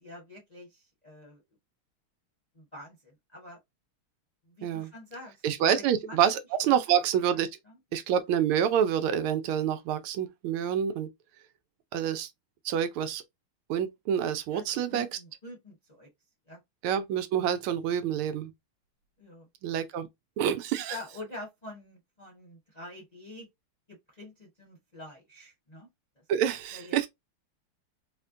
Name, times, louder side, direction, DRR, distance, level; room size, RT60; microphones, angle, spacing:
voice 1, 0.0-1.4 2.5-3.6 4.4-6.2 6.7-6.8 7.3-7.8 14.5-16.1 16.5-16.6 19.2-19.5 20.9-23.5 23.9-25.9 26.7-27.1, left 2 dB, 30° left, 0.8 m, -46 dB
voice 2, 5.4-7.5 7.9-11.1 11.9-12.3 12.6-13.2 13.7-15.1 16.8-18.5 19.6-20.1 20.4-21.0 26.3-27.1, right 9 dB, 80° right, 1.4 m, -27 dB
4.2 x 2.2 x 2.5 m
omnidirectional pair, 2.4 m